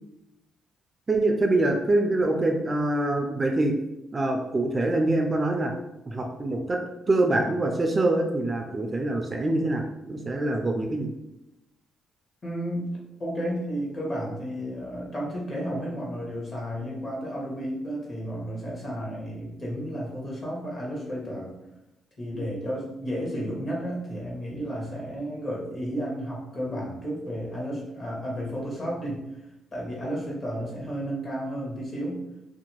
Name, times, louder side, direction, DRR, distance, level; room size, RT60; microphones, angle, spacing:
voice 1, 1.1-3.7 4.1-5.7 6.1-6.8 7.1-11.1, right 2 dB, 30° right, 3 dB, 0.3 m, -25 dB
voice 2, 12.4-12.9 13.2-21.5 22.2-29.2 29.7-32.2, equal, 40° left, -4 dB, 1.2 m, -32 dB
2.6 x 2.2 x 2.9 m, 0.91 s
cardioid pair, 90°, 0 cm